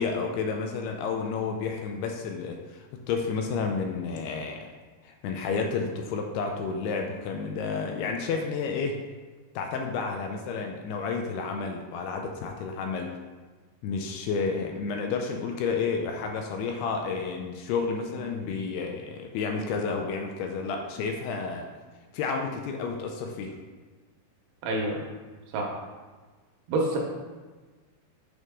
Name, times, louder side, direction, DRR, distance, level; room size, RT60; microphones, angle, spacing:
voice 1, 0.0-4.7 5.0-9.0 9.6-13.2 13.8-21.6 22.1-23.6, left 5 dB, 80° left, 3 dB, 2.4 m, -31 dB
voice 2, 24.6-25.0 25.5-25.8 26.7-27.0, right 2 dB, 75° right, 0 dB, 2.7 m, -27 dB
8.0 x 4.8 x 3.6 m, 1.3 s
omnidirectional pair, 4.9 m